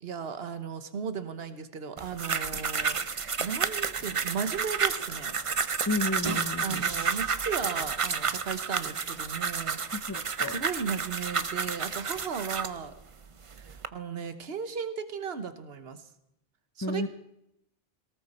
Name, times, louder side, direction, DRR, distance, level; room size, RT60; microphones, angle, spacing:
voice 1, 0.0-5.4 6.6-9.8 10.5-12.9 13.6-16.0 16.8-17.1, right 6 dB, 70° right, 10 dB, 1.4 m, -36 dB
sound 1, 2.0-12.8 13.4-13.9, right 6 dB, 35° right, 0.6 m, -31 dB
voice 2, 5.9-6.8 9.9-10.6 16.8-17.1, left 2 dB, 20° left, 9 dB, 0.7 m, -32 dB
18.5 x 18.5 x 4.3 m, 0.80 s
omnidirectional pair, 1.1 m